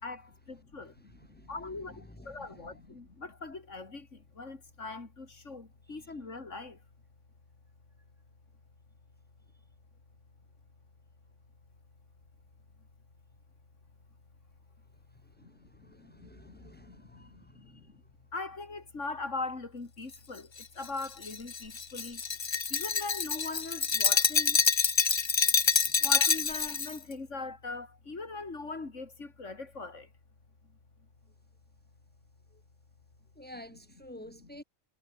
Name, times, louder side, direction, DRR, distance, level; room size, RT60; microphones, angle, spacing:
voice 1, 0.0-6.8 15.4-18.0 18.3-22.2 22.7-24.6 25.5-25.6 26.0-30.1 34.4-34.5, left 3 dB, 80° left, 3.4 m, -41 dB
voice 2, 0.8-1.5 1.9-2.7 5.8-6.1 15.2-17.8 25.8-26.0 32.5-32.6 33.3-34.6, left 1 dB, 10° left, 3.2 m, -52 dB
Glass, 20.6-26.9, left 5 dB, 35° left, 0.5 m, -27 dB
omnidirectional pair, 1.2 m